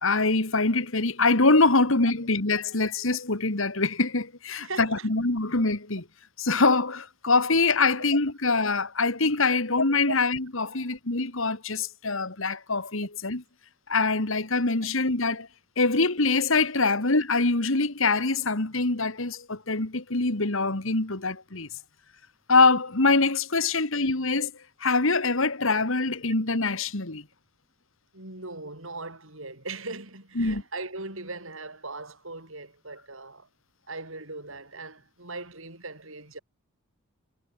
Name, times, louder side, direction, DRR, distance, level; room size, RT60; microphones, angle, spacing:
voice 1, 0.0-6.0 6.4-13.4 13.9-15.5 15.8-21.7 22.5-24.5 24.8-27.2 30.4-30.6, left 3 dB, 65° left, 2.1 m, -24 dB
voice 2, 4.6-5.1 10.0-10.2 10.7-10.8 28.1-33.5 33.9-36.4, right 3 dB, 65° right, 7.6 m, -39 dB
head